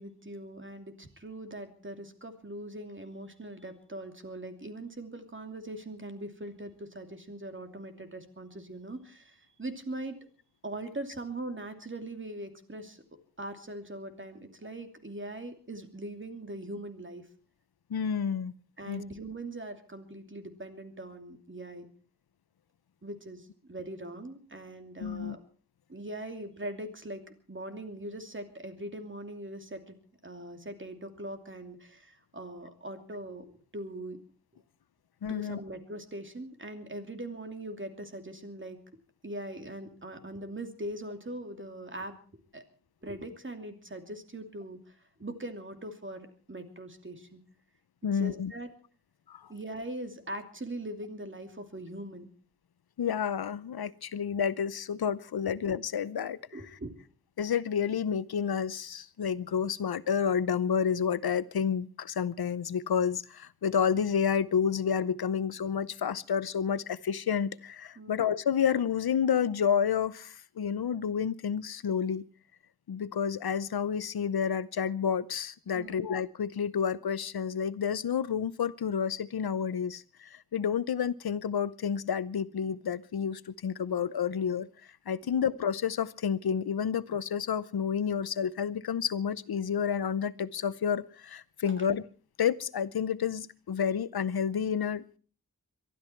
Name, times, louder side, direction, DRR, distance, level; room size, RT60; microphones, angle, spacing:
voice 1, 0.0-10.2 10.6-13.0 13.4-17.3 18.8-21.9 23.0-25.4 25.9-30.0 30.2-34.2 35.3-38.8 39.2-42.2 42.5-42.6 43.0-47.4 48.0-48.7 49.5-52.3 55.4-55.5 56.5-56.9 68.0-68.2 75.7-76.1 85.2-85.4, right 1 dB, 35° right, 6 dB, 2.7 m, -41 dB
voice 2, 17.9-18.5 18.9-19.0 25.0-25.4 35.2-35.6 48.0-48.5 49.3-49.5 53.0-56.4 57.4-72.2 72.9-84.7 85.1-92.0 92.4-95.0, left 7 dB, 85° left, 17 dB, 0.8 m, -30 dB
23.0 x 13.0 x 4.5 m, 0.41 s
wide cardioid pair, 85°, 36 cm